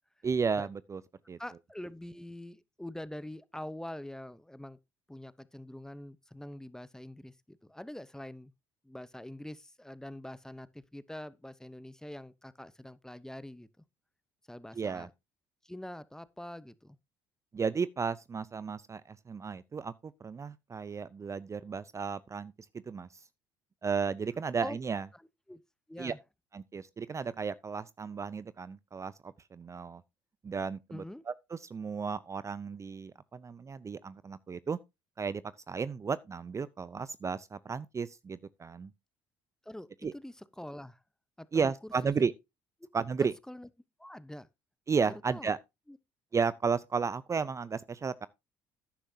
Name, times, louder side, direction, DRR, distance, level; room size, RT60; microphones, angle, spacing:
voice 1, 0.2-1.0 1.3-1.4 14.7-15.1 17.5-22.5 22.9-23.2 23.8-25.1 26.0-26.1 26.5-30.0 30.4-34.8 35.2-35.4 35.7-38.9 40.0-40.1 41.5-42.3 42.9-43.3 44.9-45.6 46.3-48.3, right 5 dB, 30° right, 0.5 m, -33 dB
voice 2, 1.4-4.8 5.1-8.5 8.8-13.7 14.5-15.1 15.6-17.0 24.5-24.8 25.5-25.6 25.9-26.2 30.9-31.2 39.6-41.0 41.4-41.7 42.0-42.1 43.2-43.7 44.0-44.5 45.3-45.5 45.9-46.0, left 1 dB, 5° left, 0.8 m, -44 dB
11.5 x 10.0 x 2.7 m
hypercardioid pair, 65°, 10 cm